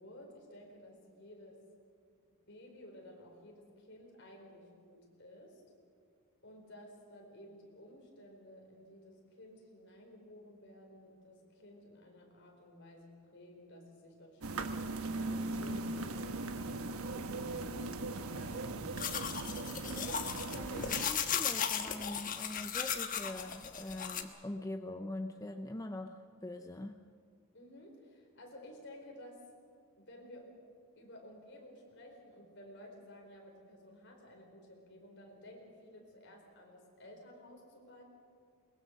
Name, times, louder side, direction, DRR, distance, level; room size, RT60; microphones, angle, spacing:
voice 1, 0.0-1.6 2.5-5.6 6.4-14.9 15.3-18.9 20.8-21.3 27.5-29.4 30.0-30.5 31.0-38.0, left 1 dB, 55° left, 1 dB, 4.5 m, -54 dB
sound 1, 14.4-21.1, right 2 dB, 85° right, 1.2 m, -39 dB
sound 2, 19.0-24.2, left 7 dB, 40° left, 1.2 m, -36 dB
voice 2, 20.2-27.0, left 1 dB, 15° left, 6 dB, 0.5 m, -43 dB
22.0 x 21.5 x 6.6 m, 2.2 s
head